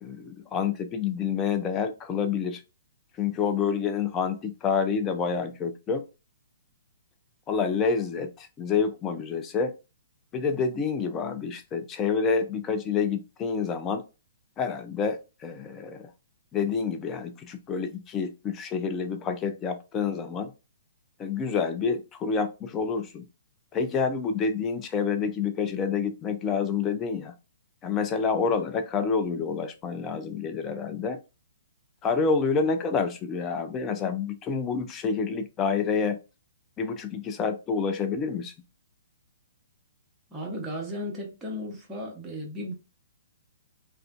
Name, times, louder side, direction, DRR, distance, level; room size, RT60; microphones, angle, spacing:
voice 1, 0.0-2.6 3.2-6.0 7.5-9.7 10.3-14.0 14.6-16.1 16.5-20.5 21.2-23.2 23.7-27.3 27.8-31.2 32.0-36.2 36.8-38.5, left 5 dB, 20° left, 0.4 m, -28 dB
voice 2, 40.3-42.7, equal, 10° right, 0.9 m, -35 dB
2.4 x 2.2 x 2.4 m
figure-of-eight pair, 125°, 0 cm